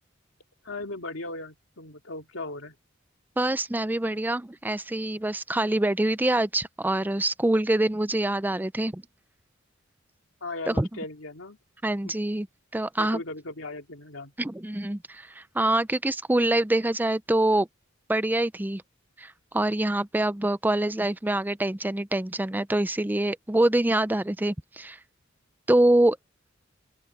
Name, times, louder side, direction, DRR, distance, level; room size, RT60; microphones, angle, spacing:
voice 1, 0.6-2.7 10.4-11.6 12.0-12.1 13.0-14.3, left 2 dB, 70° left, 2.8 m, -37 dB
voice 2, 3.4-9.0 10.7-10.9 11.8-12.5 12.7-13.2 14.4-17.7 18.1-18.8 19.2-25.0 25.7-26.2, right 1 dB, 10° right, 0.5 m, -25 dB
open air
head